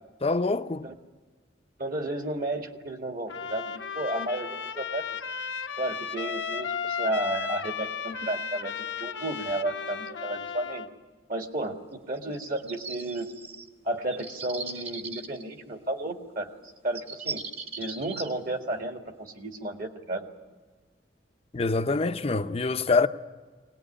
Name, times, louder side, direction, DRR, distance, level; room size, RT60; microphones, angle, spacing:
voice 1, 0.2-0.9 21.5-23.1, left 3 dB, 35° left, 0.6 m, -25 dB
voice 2, 1.8-5.2 5.8-10.9 11.3-13.3 13.8-16.5 16.8-17.4 17.8-20.3, right 1 dB, 50° right, 1.9 m, -33 dB
Trumpet, 3.3-10.9, left 6 dB, 85° left, 1.0 m, -34 dB
sound 1, 12.2-13.7 14.1-15.4 16.6-16.7 17.0-18.3, right 4 dB, 35° right, 1.4 m, -38 dB
22.5 x 18.5 x 9.9 m
head